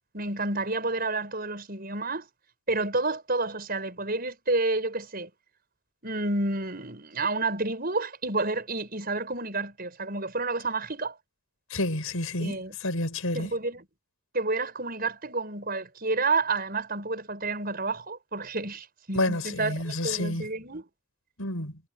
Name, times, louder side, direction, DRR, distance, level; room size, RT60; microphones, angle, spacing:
voice 1, 0.0-2.3 2.7-5.3 6.0-11.2 12.4-12.8 13.3-13.9 14.3-20.9, right 3 dB, 40° right, 7.0 m, -30 dB
voice 2, 11.7-13.5 19.1-20.5 21.4-21.8, left 2 dB, 70° left, 5.7 m, -29 dB
head